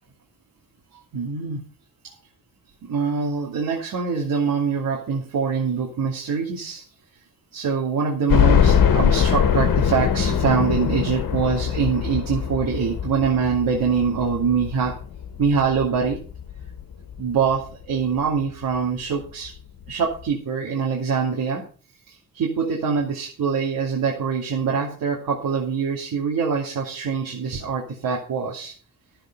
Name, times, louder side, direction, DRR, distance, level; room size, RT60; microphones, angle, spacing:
voice 1, 1.1-1.6 2.0-2.1 2.8-6.8 7.5-14.9 15.4-16.2 17.2-19.5 19.9-21.6 22.1-28.7, right 6 dB, 85° right, -2 dB, 2.8 m, -24 dB
sound 1, 8.3-17.2 17.7-17.8 18.2-18.3 19.4-19.5 19.8-19.9, left 8 dB, 75° left, 1.5 m, -22 dB
12.5 x 7.9 x 5.5 m, 0.40 s
wide cardioid pair, 170°, 33 cm